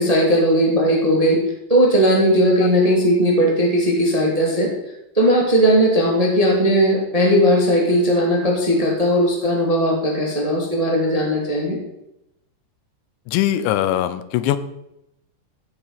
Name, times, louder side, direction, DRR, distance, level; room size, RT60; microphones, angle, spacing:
voice 1, 0.0-1.4 1.7-4.7 5.1-11.8, equal, 15° right, -1 dB, 1.4 m, -17 dB
voice 2, 13.3-14.6, left 12 dB, 85° left, 13 dB, 3.1 m, -21 dB
14.5 x 7.5 x 5.8 m, 0.84 s
omnidirectional pair, 5.1 m